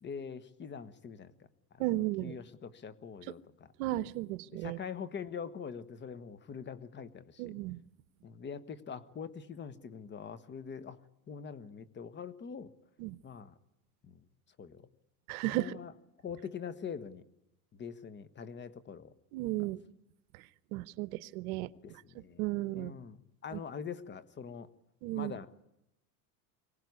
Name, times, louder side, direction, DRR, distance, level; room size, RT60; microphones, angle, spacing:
voice 1, 0.0-1.3 1.7-1.9 2.2-3.7 4.5-7.5 8.2-11.0 11.3-12.7 13.2-13.5 14.0-14.2 14.6-14.8 15.4-15.9 16.2-17.2 17.7-19.1 19.6-19.7 21.8-22.4 22.7-23.2 23.4-24.7 25.1-25.5, left 6 dB, 25° left, 14 dB, 1.3 m, -43 dB
voice 2, 1.8-2.3 3.8-4.8 7.4-7.8 13.0-13.2 15.3-15.8 19.3-19.8 20.3-20.4 20.7-21.7 22.4-22.9 23.5-23.6 25.0-25.4, right 17 dB, 70° right, 17 dB, 1.0 m, -34 dB
24.0 x 18.5 x 9.6 m, 0.87 s
supercardioid pair, 135°, 44 cm